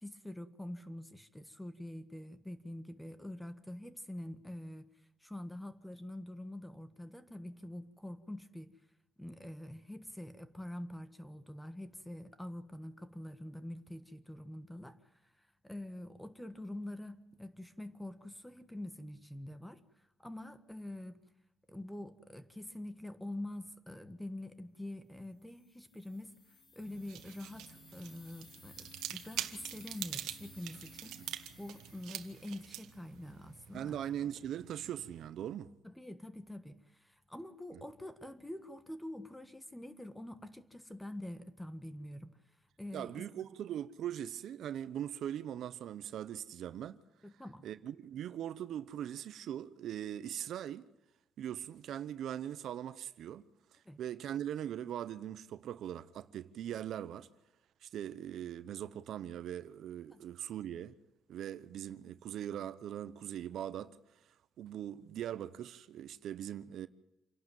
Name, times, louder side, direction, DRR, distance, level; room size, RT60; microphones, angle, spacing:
voice 1, 0.0-4.9 5.2-8.7 9.2-15.0 15.6-19.8 20.2-21.2 21.7-26.3 26.7-31.2 31.6-34.0 35.8-42.4 42.8-43.3 47.2-47.6 53.8-54.0 60.1-60.2, left 1 dB, 5° left, 1.5 m, -45 dB
sound 1, 25.5-33.5, left 3 dB, 65° left, 5.9 m, -59 dB
sound 2, 26.8-35.3, right 12 dB, 85° right, 1.4 m, -46 dB
voice 2, 33.7-35.7 42.9-47.0 47.6-50.9 51.4-53.4 53.7-57.3 57.8-60.9 61.3-64.0 64.6-66.9, right 10 dB, 65° right, 0.9 m, -41 dB
27.5 x 11.5 x 9.3 m
cardioid pair, 120°, 0 cm